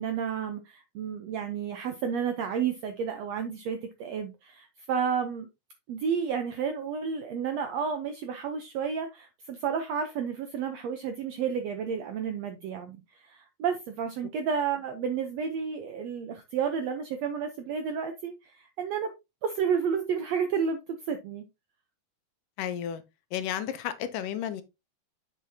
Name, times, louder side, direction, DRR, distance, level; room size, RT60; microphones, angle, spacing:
voice 1, 0.0-5.5 5.9-19.1 19.4-21.4, right 6 dB, 80° right, 1.5 m, -31 dB
voice 2, 22.6-23.0 23.3-24.6, left 10 dB, 75° left, 2.3 m, -32 dB
8.3 x 6.1 x 2.7 m
omnidirectional pair, 3.9 m